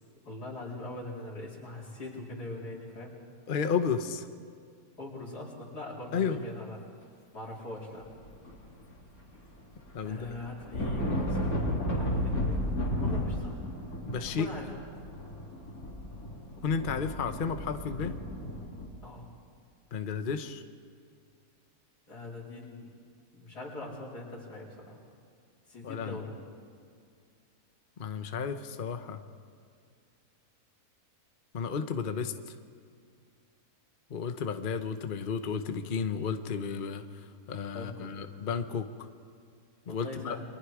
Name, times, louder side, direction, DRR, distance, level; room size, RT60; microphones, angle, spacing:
voice 1, 0.2-3.2 5.0-6.8 7.3-8.1 10.0-12.6 12.9-13.6 14.4-14.7 19.0-19.2 22.1-22.9 23.3-25.0 25.7-26.4 37.7-38.1 39.9-40.4, left 2 dB, 85° left, -3 dB, 4.8 m, -42 dB
voice 2, 3.5-4.3 6.1-6.4 9.9-10.3 14.0-14.5 16.6-18.2 19.9-20.6 25.8-26.2 28.0-29.2 31.5-32.5 34.1-39.1 39.9-40.4, left 6 dB, 40° left, 8 dB, 1.0 m, -32 dB
sound 1, 8.1-9.0 9.3-18.9, left 1 dB, 65° left, 3.8 m, -33 dB
30.0 x 23.5 x 4.9 m, 2.3 s
omnidirectional pair, 1.7 m